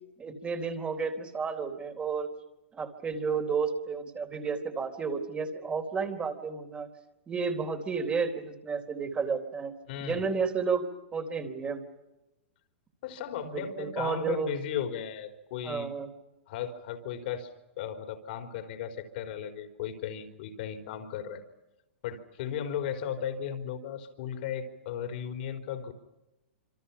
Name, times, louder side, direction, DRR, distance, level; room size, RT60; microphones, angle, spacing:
voice 1, 0.2-2.3 2.7-6.9 7.3-9.7 10.0-10.8 11.1-11.8 13.4-14.6 15.6-16.1, right 5 dB, 20° right, 6 dB, 3.9 m, -32 dB
voice 2, 9.9-10.3 13.0-15.9 16.5-17.5 17.8-21.4 22.0-25.9, left 8 dB, 55° left, 7 dB, 4.2 m, -36 dB
27.5 x 26.5 x 5.8 m, 0.99 s
hypercardioid pair, 115°, 6 cm